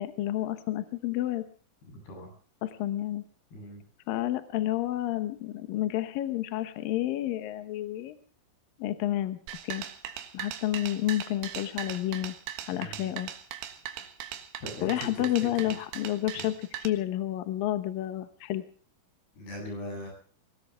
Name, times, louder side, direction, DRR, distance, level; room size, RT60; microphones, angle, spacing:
voice 1, 0.0-1.4 2.6-3.2 4.1-8.2 8.8-9.8 10.3-12.3 12.7-13.3 14.8-18.6, left 13 dB, 70° left, 10 dB, 2.2 m, -30 dB
voice 2, 1.8-2.3 3.5-3.8 12.7-13.1 14.6-15.1 15.6-15.7 16.3-16.5 19.4-20.1, left 1 dB, 55° left, 2 dB, 10.0 m, -40 dB
sound 1, 9.5-16.9, right 11 dB, 85° right, 4.0 m, -39 dB
21.0 x 19.0 x 3.5 m, 0.42 s
omnidirectional pair, 5.5 m